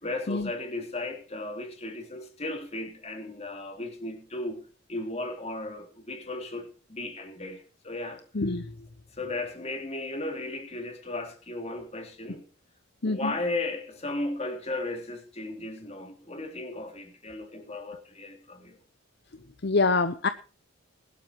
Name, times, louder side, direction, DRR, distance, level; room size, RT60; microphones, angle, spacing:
voice 1, 0.0-4.6 4.9-8.4 9.1-12.4 13.0-18.8, left 2 dB, 30° left, 3.3 m, -35 dB
voice 2, 8.4-8.7 13.0-13.3 19.6-20.3, left 3 dB, 55° left, 0.8 m, -25 dB
21.0 x 12.0 x 3.0 m
head